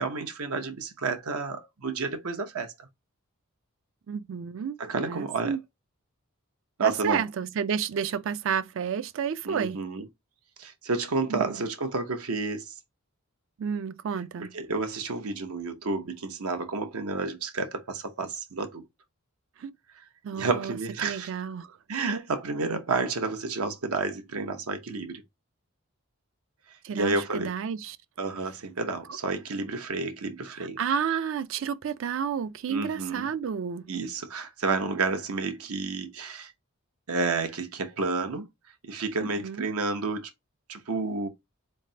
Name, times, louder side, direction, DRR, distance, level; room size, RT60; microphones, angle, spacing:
voice 1, 0.0-2.9 4.8-5.5 6.8-7.2 9.5-10.0 10.6-12.7 14.5-18.8 20.4-21.3 21.9-25.2 27.0-27.5 28.2-30.8 32.7-33.3 33.9-36.5 37.1-38.5 38.8-40.3 40.7-41.3, right 3 dB, 85° right, 0.9 m, -30 dB
voice 2, 4.1-4.8 5.0-5.6 6.8-9.8 11.3-11.6 13.6-14.5 19.6-19.7 20.2-21.8 26.8-28.0 30.6-33.9 39.2-39.7, right 7 dB, 60° right, 0.3 m, -31 dB
4.1 x 3.3 x 2.7 m
head